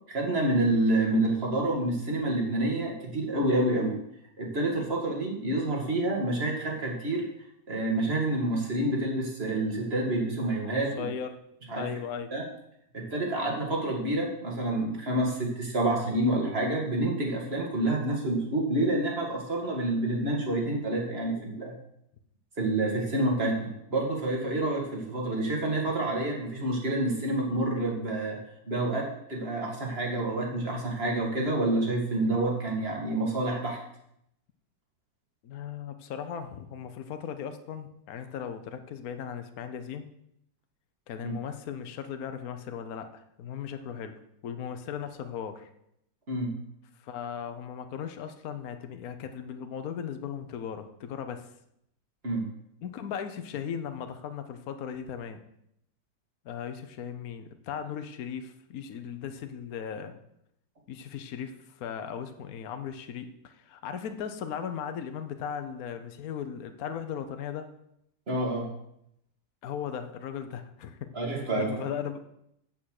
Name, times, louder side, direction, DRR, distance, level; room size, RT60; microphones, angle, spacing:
voice 1, 0.1-3.9 4.4-7.2 7.7-11.0 11.7-11.9 12.3-12.4 12.9-21.7 22.6-28.4 28.7-33.8 41.2-41.3 46.3-46.6 52.2-52.4 68.3-68.7 71.1-71.9, right 1 dB, 35° right, 0 dB, 2.3 m, -28 dB
voice 2, 11.0-11.4 11.7-12.3 35.4-40.1 41.1-45.7 47.0-51.5 52.8-55.4 56.4-60.2 60.9-67.7 69.6-72.2, left 8 dB, 65° left, 8 dB, 1.3 m, -37 dB
8.3 x 7.3 x 6.5 m, 0.77 s
omnidirectional pair, 1.8 m